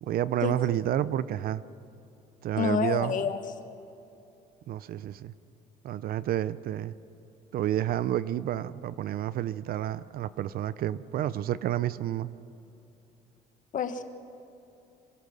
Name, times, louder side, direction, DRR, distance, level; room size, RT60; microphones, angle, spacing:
voice 1, 0.0-1.6 2.4-3.2 4.7-5.3 5.8-6.9 7.5-12.3, right 12 dB, 60° right, 17 dB, 0.6 m, -30 dB
voice 2, 2.6-3.4 13.7-14.0, left 7 dB, 50° left, 9 dB, 1.4 m, -28 dB
25.5 x 16.0 x 6.4 m, 2.7 s
cardioid pair, 110°, 17 cm